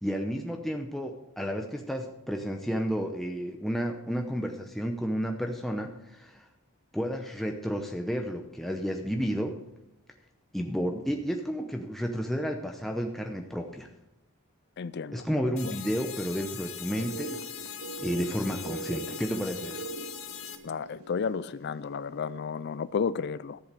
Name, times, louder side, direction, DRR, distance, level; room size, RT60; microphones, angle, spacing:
voice 1, 0.0-6.4 6.9-9.6 10.5-13.9 15.1-17.4 17.6-17.7 18.0-19.8, equal, ahead, 0.7 m, -31 dB
voice 2, 14.8-15.3 15.6-15.8 20.6-23.6, left 6 dB, 50° left, 0.4 m, -32 dB
sound 1, 15.6-20.6, left 9 dB, 65° left, 1.3 m, -41 dB
sound 2, 17.0-21.9, right 4 dB, 75° right, 0.9 m, -42 dB
14.0 x 7.9 x 6.7 m
head